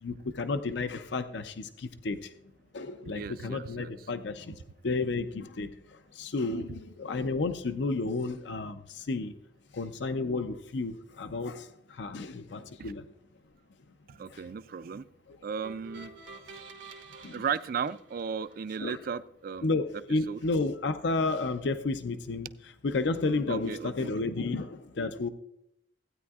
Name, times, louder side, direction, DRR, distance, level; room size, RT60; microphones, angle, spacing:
voice 1, 0.0-2.3 2.7-4.5 4.8-9.3 9.7-13.0 14.3-14.4 15.3-15.4 17.2-17.4 18.8-19.0 19.6-22.5 22.8-25.3, left 3 dB, 65° left, 10 dB, 0.5 m, -32 dB
voice 2, 3.1-3.9 12.8-12.9 14.1-15.1 15.4-16.1 17.3-19.7 20.3-20.4 23.5-24.1, right 6 dB, 50° right, 15 dB, 0.4 m, -35 dB
sound 1, 15.6-18.9, right 4 dB, 80° right, 1.2 m, -49 dB
15.5 x 9.3 x 2.4 m, 0.76 s
head